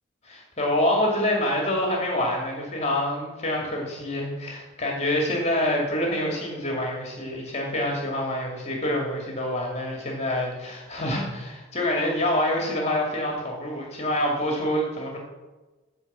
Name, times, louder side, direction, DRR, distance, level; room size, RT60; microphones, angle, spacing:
voice 1, 0.2-15.2, left 1 dB, 30° left, -1 dB, 2.2 m, -26 dB
14.0 x 4.9 x 7.3 m, 1.2 s
head